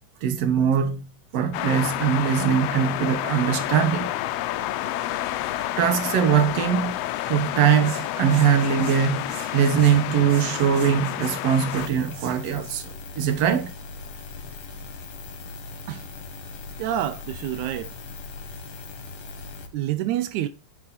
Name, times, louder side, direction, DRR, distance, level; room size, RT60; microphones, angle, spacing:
voice 1, 0.2-1.1 1.3-4.1 5.8-7.0 7.3-13.7, right 8 dB, 65° right, 2.2 m, -22 dB
sound 1, 1.5-11.9, left 14 dB, 75° left, 1.5 m, -29 dB
sound 2, 11.8-19.7, left 4 dB, 60° left, 2.7 m, -39 dB
voice 2, 16.8-17.9 19.7-20.5, right 12 dB, 85° right, 2.1 m, -27 dB
10.5 x 6.2 x 4.3 m
omnidirectional pair, 3.3 m